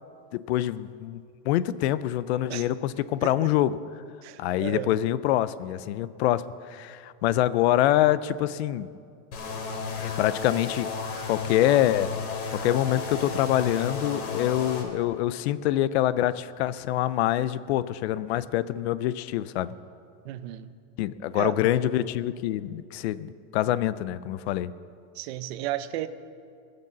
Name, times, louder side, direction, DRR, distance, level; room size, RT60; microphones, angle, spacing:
voice 1, 0.3-3.8 4.4-8.9 10.0-10.9 11.3-12.1 12.6-19.7 21.0-24.7, left 13 dB, 50° left, 16 dB, 0.5 m, -25 dB
voice 2, 4.2-4.9 20.2-20.7 21.3-21.6 25.1-26.1, right 14 dB, 45° right, 12 dB, 0.7 m, -33 dB
sound 1, 9.3-14.8, left 4 dB, 85° left, 2.9 m, -33 dB
19.0 x 6.7 x 7.3 m, 2.4 s
supercardioid pair, 170°, 42 cm